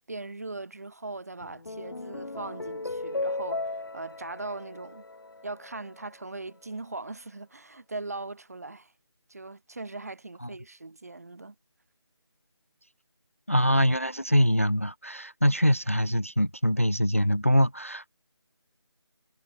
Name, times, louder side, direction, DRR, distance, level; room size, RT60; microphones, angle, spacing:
voice 1, 0.1-5.0 5.4-8.9 9.3-11.5, right 3 dB, 35° right, 1.1 m, -40 dB
sound 1, 1.4-6.0, left 2 dB, 50° left, 3.4 m, -36 dB
voice 2, 13.5-18.1, equal, 30° left, 0.4 m, -24 dB
figure-of-eight pair, 175°, 15 cm